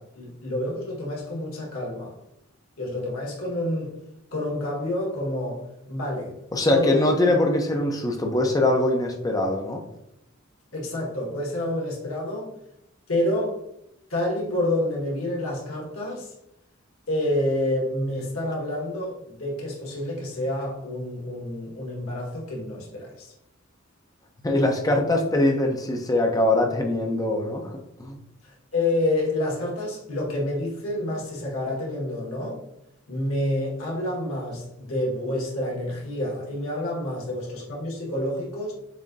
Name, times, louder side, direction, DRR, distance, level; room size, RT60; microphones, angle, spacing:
voice 1, 0.0-2.1 2.8-4.0 4.3-6.3 6.7-7.1 10.7-12.5 13.1-13.6 14.1-16.3 17.1-23.3 28.4-32.6 33.1-38.7, left 1 dB, 80° left, -3 dB, 1.5 m, -28 dB
voice 2, 6.5-9.8 24.4-27.7 28.0-28.2, left 1 dB, 15° left, 2 dB, 0.7 m, -22 dB
7.0 x 2.8 x 2.6 m, 0.81 s
head